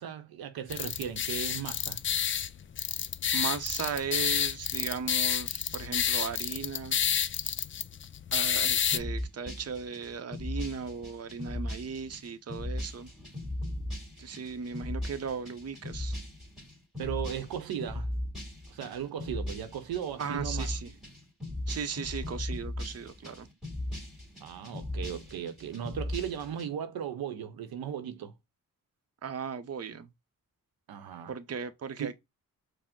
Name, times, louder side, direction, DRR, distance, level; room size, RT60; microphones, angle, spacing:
voice 1, 0.0-2.0 17.0-18.1 18.7-20.7 24.4-28.3 30.9-31.3 32.0-32.1, right 9 dB, 90° right, 0.8 m, -37 dB
sound 1, 0.7-9.0, left 8 dB, 35° left, 0.4 m, -30 dB
voice 2, 3.3-7.0 8.3-13.1 14.2-16.1 20.2-20.9 21.7-23.5 29.2-30.1 31.3-32.2, right 6 dB, 45° right, 0.7 m, -37 dB
sound 2, 8.9-26.7, left 1 dB, ahead, 2.2 m, -38 dB
5.0 x 2.1 x 3.6 m
cardioid pair, 60°, 35 cm